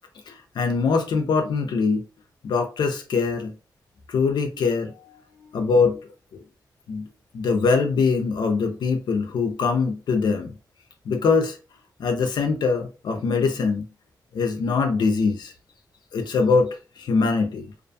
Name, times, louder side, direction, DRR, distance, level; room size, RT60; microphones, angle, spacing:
voice 1, 0.3-2.0 2.4-3.5 4.1-5.2 5.5-6.0 6.3-6.4 6.9-7.1 7.3-10.5 11.1-11.6 12.0-13.8 14.3-15.5 16.1-17.7, left 4 dB, 75° left, 0.4 m, -23 dB
2.4 x 2.2 x 2.6 m
cardioid pair, 80°, 7 cm